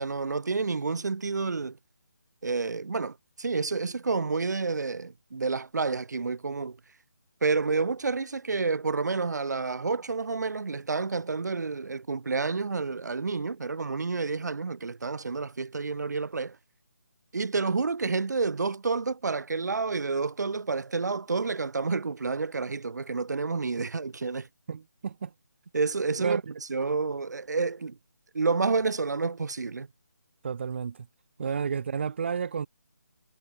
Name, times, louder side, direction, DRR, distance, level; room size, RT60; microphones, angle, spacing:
voice 1, 0.0-1.8 2.4-6.8 7.4-16.6 17.3-24.5 25.7-26.4 26.7-28.0 28.3-29.9, right 4 dB, 70° right, 1.4 m, -29 dB
voice 2, 24.7-25.3 26.2-26.4 30.4-31.1 31.4-32.7, right 6 dB, 40° right, 1.2 m, -31 dB
hypercardioid pair, 170°, 10 cm